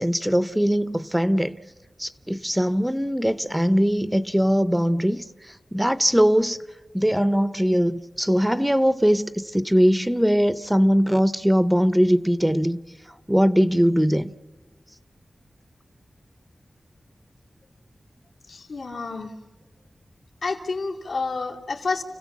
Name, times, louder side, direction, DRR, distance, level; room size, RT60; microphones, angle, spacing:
voice 1, 0.0-1.6 2.0-6.6 6.9-12.8 13.3-14.3, equal, 5° right, 14 dB, 0.6 m, -21 dB
voice 2, 18.5-19.3 20.4-22.0, left 4 dB, 80° left, 0 dB, 2.7 m, -29 dB
29.5 x 16.0 x 7.3 m, 1.3 s
wide cardioid pair, 105°, 0 cm